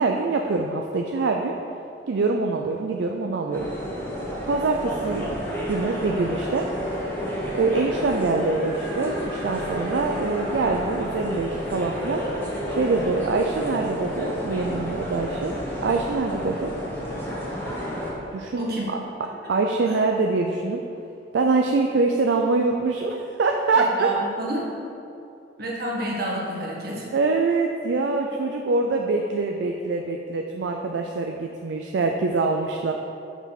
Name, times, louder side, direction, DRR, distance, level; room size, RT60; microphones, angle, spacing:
voice 1, 0.0-1.6 2.1-3.7 4.5-5.4 5.7-6.7 7.5-12.2 12.7-15.5 15.8-16.7 18.3-19.0 19.5-20.8 21.3-24.1 27.1-32.9, right 3 dB, 75° right, 2 dB, 0.4 m, -24 dB
sound 1, 3.5-18.1, equal, 15° left, 1.2 m, -30 dB
voice 2, 18.5-18.8 19.2-19.5 19.9-20.0 23.7-24.7 25.6-27.1, right 2 dB, 60° right, -4 dB, 1.5 m, -29 dB
5.5 x 4.8 x 5.9 m, 2.6 s
head